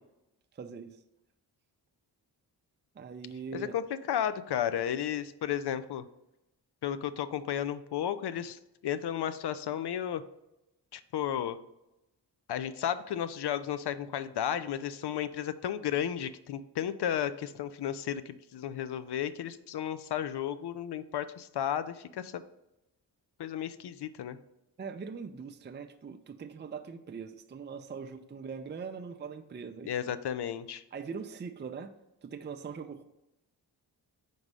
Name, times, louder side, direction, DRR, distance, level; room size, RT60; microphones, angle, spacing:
voice 1, 0.5-1.0 2.9-3.8 24.8-29.9 30.9-31.9 32.2-33.0, right 5 dB, 25° right, 6 dB, 0.5 m, -41 dB
voice 2, 3.5-6.0 6.8-10.2 10.9-11.6 12.5-22.4 23.4-24.4 29.8-30.8, left 10 dB, 60° left, 13 dB, 0.5 m, -33 dB
5.3 x 3.9 x 4.7 m, 0.91 s
supercardioid pair, 45°, 45 cm